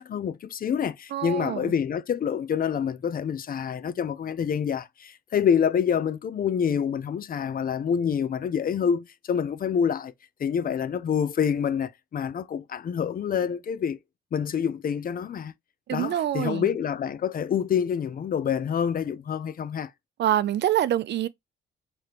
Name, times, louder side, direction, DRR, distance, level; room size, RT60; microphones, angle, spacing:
voice 1, 0.0-10.1 10.4-14.0 14.3-15.5 15.9-19.9, left 7 dB, 45° left, 0.6 m, -27 dB
voice 2, 1.1-1.7 15.9-16.7 20.2-21.3, right 11 dB, 60° right, 0.5 m, -25 dB
4.9 x 3.2 x 2.9 m
cardioid pair, 90°, 20 cm